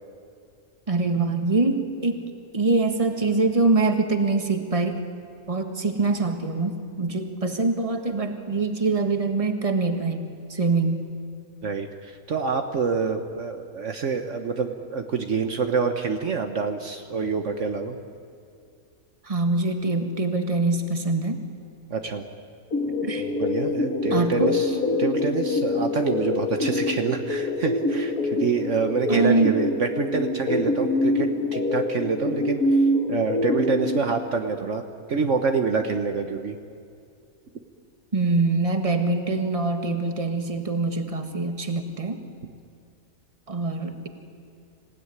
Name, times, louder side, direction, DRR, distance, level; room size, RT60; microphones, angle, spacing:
voice 1, 0.9-2.2 2.5-5.0 5.5-11.0 19.2-21.4 23.0-23.3 24.1-24.5 29.1-29.6 38.1-42.2 43.5-44.1, right 3 dB, 25° right, 6 dB, 1.7 m, -24 dB
voice 2, 11.6-18.0 21.9-22.2 23.2-32.6 33.1-34.8 35.1-36.6, right 5 dB, 60° right, 6 dB, 1.4 m, -27 dB
sound 1, 22.7-34.0, left 2 dB, 90° left, 2.9 m, -25 dB
26.5 x 17.0 x 9.7 m, 2.3 s
omnidirectional pair, 1.5 m